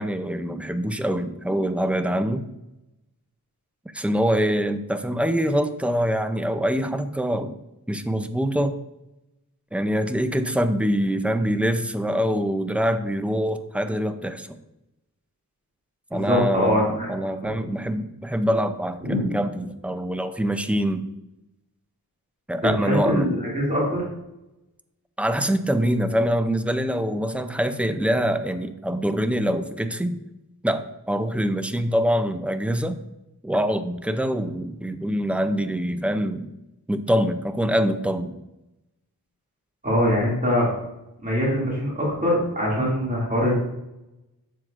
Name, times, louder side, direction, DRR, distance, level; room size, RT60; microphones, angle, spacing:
voice 1, 0.0-2.5 3.9-7.5 7.9-8.8 9.7-14.5 16.1-21.1 22.5-23.4 25.2-30.2 30.6-33.0 33.4-36.5 36.9-38.4, equal, 5° right, 9 dB, 0.4 m, -24 dB
voice 2, 16.1-17.1 19.0-19.2 22.8-24.0 39.8-40.7 41.2-43.5, equal, 20° right, -6 dB, 2.3 m, -23 dB
7.5 x 6.6 x 2.5 m, 0.91 s
wide cardioid pair, 105°, 37 cm